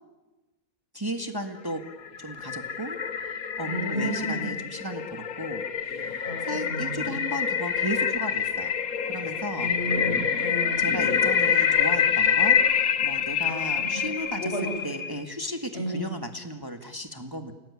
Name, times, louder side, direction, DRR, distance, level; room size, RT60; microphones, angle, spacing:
voice 1, 0.9-1.8 2.2-3.0 3.6-8.7 9.1-9.7 10.8-14.5 14.8-17.5, equal, 15° right, 5 dB, 1.9 m, -35 dB
sound 1, 1.8-15.2, left 7 dB, 75° left, 1.7 m, -26 dB
voice 2, 3.6-4.5 6.2-7.2 9.5-10.8 13.5-14.0 14.4-14.7 15.7-16.1, right 1 dB, 45° left, -1 dB, 7.6 m, -33 dB
29.5 x 19.5 x 9.8 m, 1.1 s
omnidirectional pair, 1.5 m